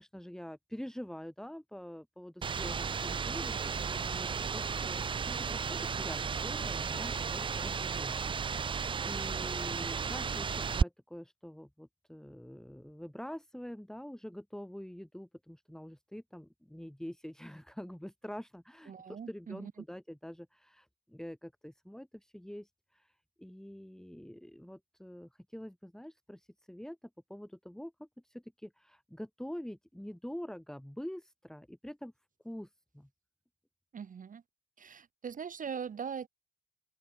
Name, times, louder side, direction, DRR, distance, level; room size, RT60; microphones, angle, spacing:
voice 1, 0.0-8.2 9.0-23.1 23.4-27.0 27.3-32.1 32.4-32.7 32.9-33.1, equal, 5° left, 3.6 m, -46 dB
sound 1, 2.4-10.8, right 6 dB, 25° right, 0.4 m, -34 dB
voice 2, 18.9-19.7 33.9-34.4 34.8-36.3, right 7 dB, 40° right, 1.3 m, -41 dB
open air
cardioid pair, 90°, 20 cm